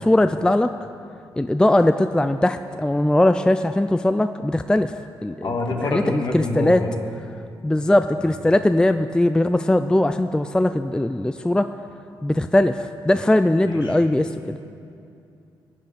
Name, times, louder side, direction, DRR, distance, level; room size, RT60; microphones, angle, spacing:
voice 1, 0.1-0.7 1.4-4.9 5.2-5.5 5.9-6.8 7.6-11.7 12.2-14.6, left 1 dB, 10° left, 9 dB, 0.4 m, -20 dB
voice 2, 5.4-6.9 8.2-8.3 13.6-14.0, left 2 dB, 55° left, 1 dB, 2.1 m, -26 dB
16.5 x 9.3 x 5.1 m, 2.6 s
cardioid pair, 65°, 9 cm